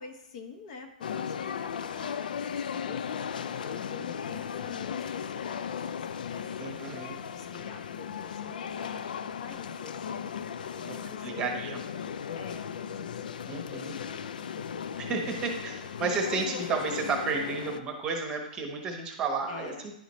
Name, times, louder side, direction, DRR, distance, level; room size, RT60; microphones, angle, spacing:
voice 1, 0.0-7.1 7.3-11.5 12.3-14.9 16.4-16.6 19.5-19.9, left 4 dB, 45° left, 4 dB, 0.9 m, -48 dB
sound 1, 1.0-17.8, left 7 dB, 75° left, 0.4 m, -36 dB
voice 2, 6.6-7.2 10.9-11.0 11.2-11.8 13.5-14.0 15.0-19.9, right 4 dB, 20° right, 3 dB, 1.0 m, -32 dB
10.0 x 4.1 x 3.1 m, 0.78 s
hypercardioid pair, 150°, 5 cm